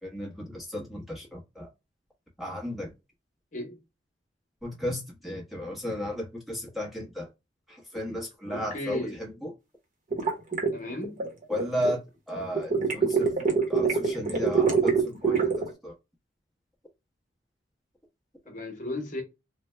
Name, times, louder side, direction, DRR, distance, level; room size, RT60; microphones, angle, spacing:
voice 1, 0.0-1.7 2.4-2.9 4.6-7.3 7.7-9.5 11.5-13.4 13.7-15.5 15.8-15.9, equal, ahead, 1.0 m, -34 dB
voice 2, 8.5-9.2 10.7-11.2 18.5-19.2, left 1 dB, 45° left, 1.0 m, -35 dB
sound 1, 10.1-11.9 12.6-15.7, right 5 dB, 45° right, 1.0 m, -24 dB
3.2 x 2.2 x 3.2 m
head